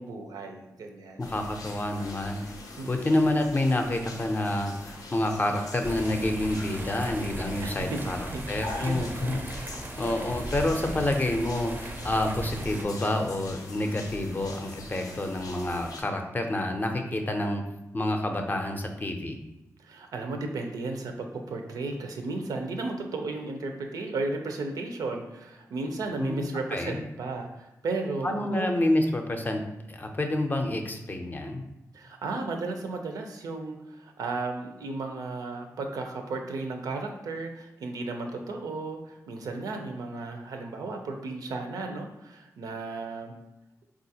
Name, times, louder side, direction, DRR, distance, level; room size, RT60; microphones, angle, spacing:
voice 1, 0.0-1.2 2.8-2.9 7.6-9.7 19.8-28.7 31.9-43.3, right 3 dB, 90° right, 4 dB, 0.4 m, -34 dB
sound 1, 1.2-16.0, left 2 dB, 90° left, 0.5 m, -43 dB
voice 2, 1.2-2.5 2.9-8.2 8.5-9.7 10.0-17.6 17.9-19.4 26.2-27.0 28.2-29.6 29.9-31.6, left 1 dB, 30° left, 4 dB, 0.5 m, -28 dB
sound 2, 5.8-12.9, right 1 dB, 30° right, 0.4 m, -38 dB
3.8 x 2.4 x 2.7 m, 0.93 s
cardioid pair, 85°, 6 cm